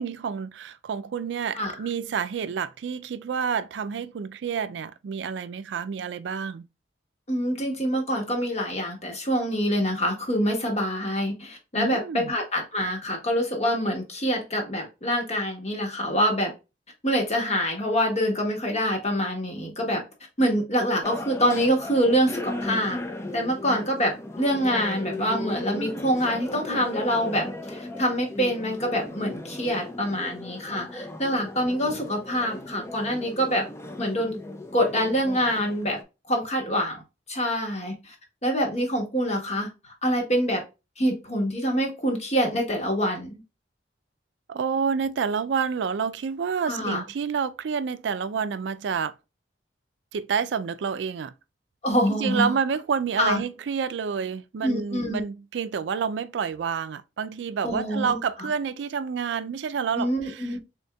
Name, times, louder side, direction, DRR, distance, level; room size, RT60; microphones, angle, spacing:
voice 1, 0.0-6.7 11.8-12.3 44.5-49.1 50.1-51.3 52.1-60.5, right 6 dB, 80° right, 0.4 m, -29 dB
voice 2, 7.3-16.5 17.0-20.0 20.4-23.0 23.3-33.7 34.0-34.3 34.7-36.0 36.3-37.0 37.3-38.1 38.4-40.6 41.0-43.4 46.7-47.0 51.8-52.5 53.2-53.4 54.6-55.2 57.6-58.5 59.9-60.6, equal, 35° left, 1.4 m, -25 dB
sound 1, 21.0-36.0, left 1 dB, 15° left, 0.5 m, -37 dB
4.1 x 3.5 x 2.2 m
head